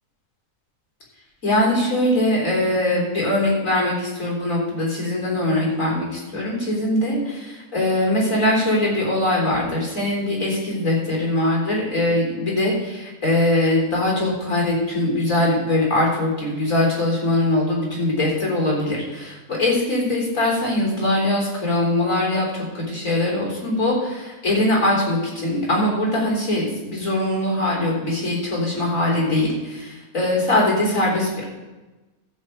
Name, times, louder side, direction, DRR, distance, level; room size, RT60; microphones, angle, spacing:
voice 1, 1.4-31.5, left 1 dB, 60° left, -2 dB, 4.2 m, -22 dB
13.5 x 4.8 x 7.8 m, 1.1 s
omnidirectional pair, 1.5 m